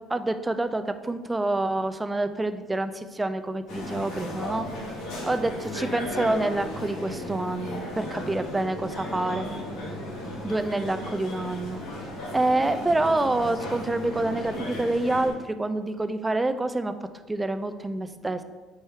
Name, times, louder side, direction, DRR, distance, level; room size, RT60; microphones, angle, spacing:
voice 1, 0.1-4.7 5.2-9.5 10.4-11.8 12.3-16.9 17.3-18.4, right 2 dB, 10° right, 10 dB, 0.3 m, -27 dB
sound 1, 3.7-15.3, left 1 dB, 85° left, 1.9 m, -35 dB
4.8 x 4.6 x 4.4 m, 1.3 s
cardioid pair, 135°, 0 cm